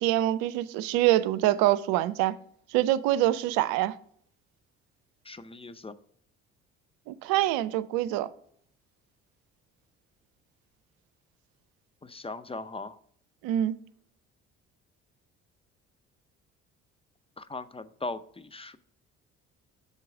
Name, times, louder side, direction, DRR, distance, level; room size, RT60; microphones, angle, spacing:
voice 1, 0.0-2.3 2.7-4.0 7.1-8.3 13.4-13.8, right 14 dB, 70° right, 0.5 m, -25 dB
voice 2, 5.2-5.9 12.0-13.0 17.4-18.8, left 3 dB, 15° left, 0.5 m, -39 dB
6.8 x 4.6 x 5.9 m
hypercardioid pair, 50°, 36 cm